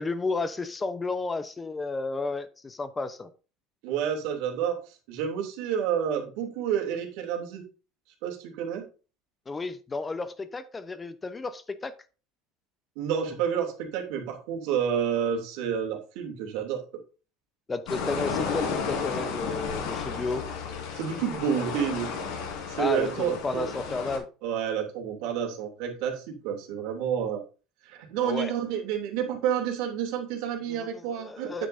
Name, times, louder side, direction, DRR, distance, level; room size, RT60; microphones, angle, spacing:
voice 1, 0.0-3.3 9.5-11.9 17.7-20.4 22.8-24.3 28.2-28.5 30.7-31.7, left 3 dB, 20° left, 12 dB, 0.8 m, -32 dB
voice 2, 3.8-7.6 8.2-8.9 13.0-16.8 20.9-22.1 22.7-23.7 24.4-27.4 27.8-31.7, right 8 dB, 70° right, 2 dB, 2.9 m, -29 dB
sound 1, 17.9-24.2, left 5 dB, 75° left, 3.8 m, -33 dB
9.1 x 8.2 x 2.7 m, 0.34 s
supercardioid pair, 110°, 0 cm